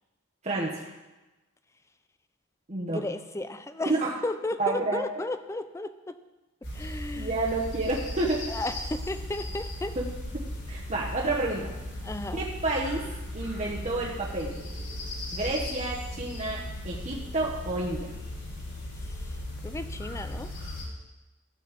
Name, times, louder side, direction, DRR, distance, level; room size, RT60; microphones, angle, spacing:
voice 1, 0.4-0.9 2.7-3.0 4.0-4.1 4.6-5.1 7.1-8.4 10.0-10.1 10.7-11.7 12.3-13.0 13.3-14.5 15.3-18.1, right 2 dB, 35° right, -4 dB, 1.1 m, -30 dB
voice 2, 2.9-6.2 6.7-7.4 8.5-10.0 12.0-12.5 19.0-19.4 19.6-20.5, left 2 dB, 15° left, 11 dB, 0.4 m, -34 dB
sound 1, 6.6-20.8, left 1 dB, 60° left, 3.8 m, -37 dB
13.0 x 4.3 x 7.2 m, 1.1 s
head